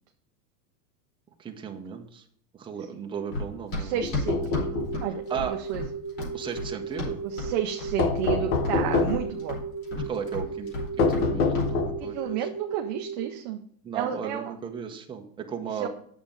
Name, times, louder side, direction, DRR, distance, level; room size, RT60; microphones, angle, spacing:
voice 1, 1.4-2.2 2.6-4.6 5.3-5.6 6.3-7.2 9.9-10.7 11.0-12.5 13.8-15.9, right 7 dB, 10° right, 2 dB, 0.8 m, -36 dB
Run, 3.3-7.5 7.8-8.4 8.6-11.3 11.5-11.7, left 2 dB, 50° left, 4.2 m, -33 dB
voice 2, 3.8-5.2 5.7-5.8 7.2-9.6 12.0-13.6 13.9-14.5 15.8-15.9, right 9 dB, 30° right, 4 dB, 0.4 m, -31 dB
sound 1, 4.0-5.0 8.0-9.3 11.0-12.1, left 4 dB, 30° left, 0.6 m, -26 dB
sound 2, 4.2-13.3, right 5 dB, 75° left, 2.4 m, -36 dB
8.7 x 7.2 x 3.8 m, 0.63 s
supercardioid pair, 160°, 47 cm